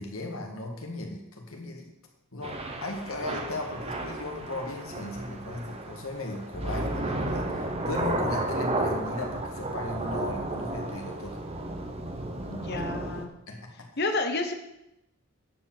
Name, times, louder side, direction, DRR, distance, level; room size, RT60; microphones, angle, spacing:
voice 1, 0.0-1.9 2.3-11.4 13.5-13.9, left 2 dB, 70° left, 2 dB, 2.0 m, -36 dB
Thunder / Rain, 2.4-13.2, right 2 dB, 30° right, 1.0 m, -33 dB
voice 2, 12.5-13.3 14.0-14.5, left 3 dB, 50° left, 5 dB, 1.0 m, -30 dB
9.5 x 5.2 x 7.4 m, 0.85 s
head